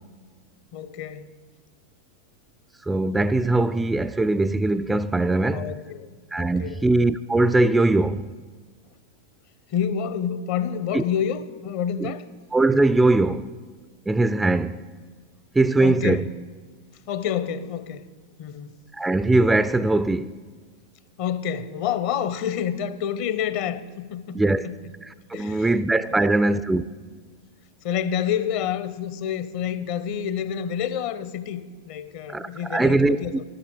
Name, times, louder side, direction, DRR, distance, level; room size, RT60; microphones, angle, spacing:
voice 1, 0.7-1.3 5.5-6.1 6.4-6.8 9.7-12.2 15.8-16.3 17.1-18.0 18.4-18.7 21.2-24.7 25.3-25.7 26.2-26.4 27.8-33.4, left 8 dB, 45° left, 0.7 m, -28 dB
voice 2, 2.9-5.7 6.3-8.3 10.9-11.0 12.0-12.1 12.5-13.5 14.1-14.8 15.5-16.2 18.9-20.3 24.3-24.7 25.0-26.9 32.3-33.4, right 2 dB, 10° right, 0.3 m, -21 dB
13.0 x 11.5 x 6.8 m
figure-of-eight pair, 90°, 0 cm